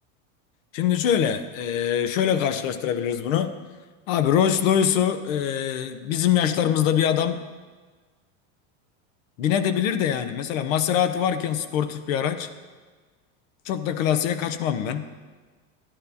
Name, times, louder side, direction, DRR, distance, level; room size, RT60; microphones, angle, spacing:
voice 1, 0.7-3.5 4.1-7.4 9.4-12.5 13.7-15.1, left 9 dB, 85° left, 11 dB, 0.8 m, -23 dB
12.0 x 11.0 x 2.8 m, 1.4 s
supercardioid pair, 160°, 39 cm